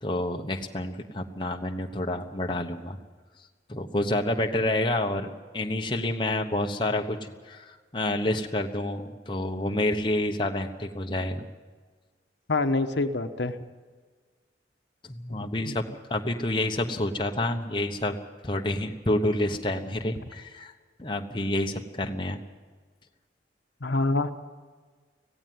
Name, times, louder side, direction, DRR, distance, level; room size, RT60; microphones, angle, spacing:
voice 1, 0.0-3.0 3.7-11.5 15.0-15.8 16.1-18.2 18.4-20.7 21.0-22.4, left 1 dB, 25° left, 3 dB, 1.1 m, -28 dB
voice 2, 12.5-13.6 15.3-15.8 23.8-24.3, left 2 dB, 75° left, 7 dB, 1.2 m, -26 dB
17.0 x 16.0 x 9.5 m, 1.5 s
head